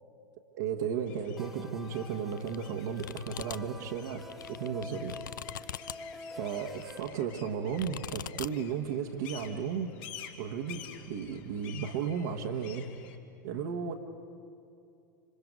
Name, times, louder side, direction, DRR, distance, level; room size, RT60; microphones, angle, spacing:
voice 1, 0.5-5.2 5.9-6.1 6.3-9.9 10.4-12.9 13.4-13.9, right 7 dB, 55° right, 2 dB, 1.4 m, -34 dB
sound 1, 1.1-13.2, left 9 dB, 50° left, 1.8 m, -51 dB
sound 2, 1.4-7.0, left 2 dB, ahead, 1.3 m, -47 dB
sound 3, 2.3-2.6 3.0-3.6 4.1-5.9 6.8-7.2 7.8-8.5, left 10 dB, 70° left, 0.5 m, -41 dB
26.0 x 26.0 x 5.3 m, 2.6 s
figure-of-eight pair, 90°, 11 cm